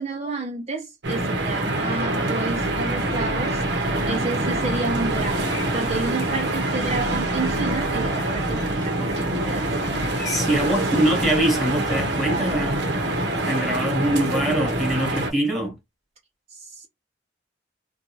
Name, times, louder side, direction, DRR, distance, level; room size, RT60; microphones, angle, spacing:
voice 1, 0.0-3.6 4.1-9.8 10.5-11.0 16.5-16.9, right 3 dB, 35° right, 0.5 m, -31 dB
sound 1, 1.0-15.3, right 1 dB, 70° right, 0.8 m, -25 dB
sound 2, 2.5-13.1, left 1 dB, 60° left, 0.6 m, -39 dB
sound 3, 4.5-10.8, left 5 dB, 80° left, 1.1 m, -44 dB
voice 2, 10.2-12.9 13.3-15.8, right 1 dB, ahead, 1.1 m, -23 dB
2.6 x 2.2 x 2.9 m
head